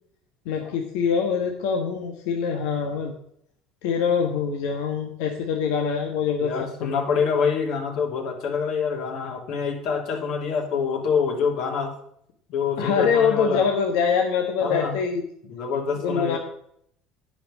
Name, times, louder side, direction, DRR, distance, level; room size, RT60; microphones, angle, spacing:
voice 1, 0.4-3.1 3.8-6.5 6.8-7.0 12.8-15.2 16.0-16.4, left 6 dB, 85° left, 3 dB, 1.4 m, -24 dB
voice 2, 6.4-11.9 12.5-13.7 14.6-15.0 15.4-16.4, left 6 dB, 60° left, 3 dB, 2.7 m, -26 dB
10.0 x 6.0 x 7.4 m, 0.70 s
cardioid pair, 135°, 0 cm